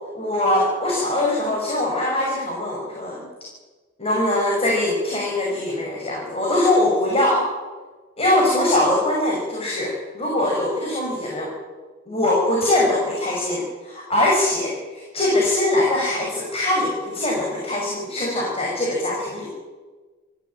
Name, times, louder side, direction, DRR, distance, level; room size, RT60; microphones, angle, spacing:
voice 1, 0.1-3.3 4.0-7.5 8.2-11.5 12.1-19.5, left 1 dB, 30° left, -2 dB, 5.9 m, -22 dB
29.0 x 14.0 x 8.9 m, 1.3 s
head